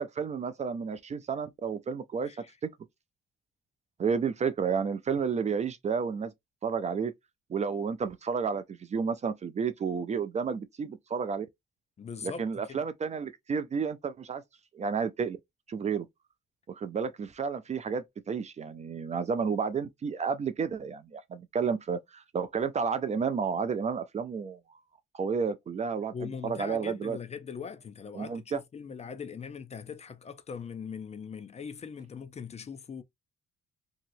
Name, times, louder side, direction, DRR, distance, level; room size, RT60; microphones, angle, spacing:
voice 1, 0.0-2.3 2.6-2.7 4.0-6.3 6.6-7.1 7.5-11.5 12.2-14.4 14.7-15.4 15.7-16.1 16.7-24.6 25.1-26.1 26.4-27.2 28.1-28.6, right 6 dB, 35° right, 0.4 m, -31 dB
voice 2, 12.0-12.8 26.1-33.0, left 6 dB, 35° left, 0.5 m, -41 dB
2.9 x 2.8 x 2.6 m
cardioid pair, 125°, 20 cm